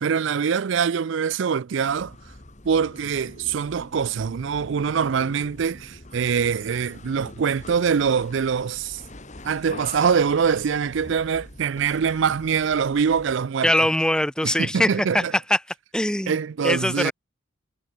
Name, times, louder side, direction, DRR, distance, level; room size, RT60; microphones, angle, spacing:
voice 1, 0.0-2.2 2.6-9.0 9.4-13.7 14.4-15.3 16.3-17.1, right 6 dB, 60° right, 0.4 m, -24 dB
sound 1, 1.8-13.5, left 2 dB, 35° left, 2.3 m, -44 dB
voice 2, 13.6-15.2 15.5-15.6 15.9-16.4 16.6-17.1, left 1 dB, 5° left, 0.9 m, -22 dB
head